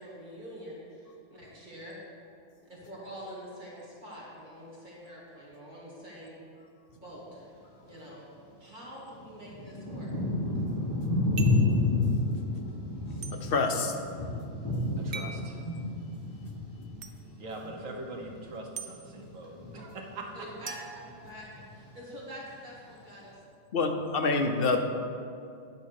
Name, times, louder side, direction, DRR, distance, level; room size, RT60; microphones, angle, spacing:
voice 1, 0.0-2.0 2.6-6.4 6.9-7.5 7.8-8.2 8.6-10.1 19.7-19.8 20.3-23.4, equal, 40° right, -5 dB, 2.1 m, -46 dB
Thunder / Rain, 8.4-8.5 9.1-18.7 19.0-19.8 20.4-20.7 21.0-21.8 22.4-22.5, left 2 dB, 20° left, 1.3 m, -30 dB
sound 1, 11.4-11.7 13.2-13.4 15.1-15.4 17.0-17.1 18.8-18.9 20.7-21.7, right 6 dB, 55° right, 0.8 m, -41 dB
voice 2, 13.4-13.9 23.7-24.8, left 3 dB, 55° left, 4 dB, 0.8 m, -26 dB
voice 3, 15.0-15.6 17.4-20.3, right 2 dB, 85° right, 0 dB, 1.5 m, -42 dB
9.8 x 4.2 x 6.5 m, 2.4 s
omnidirectional pair, 1.3 m